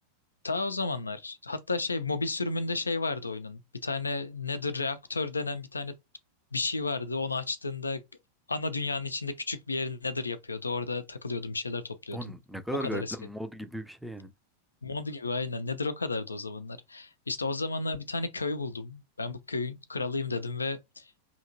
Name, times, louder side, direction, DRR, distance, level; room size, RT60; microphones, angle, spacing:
voice 1, 0.4-5.9 6.5-8.0 8.5-12.3 12.8-13.2 14.8-21.1, left 3 dB, 80° left, 0.3 m, -32 dB
voice 2, 12.1-14.3, equal, ahead, 0.4 m, -37 dB
2.8 x 2.8 x 2.6 m
figure-of-eight pair, 90°, 0 cm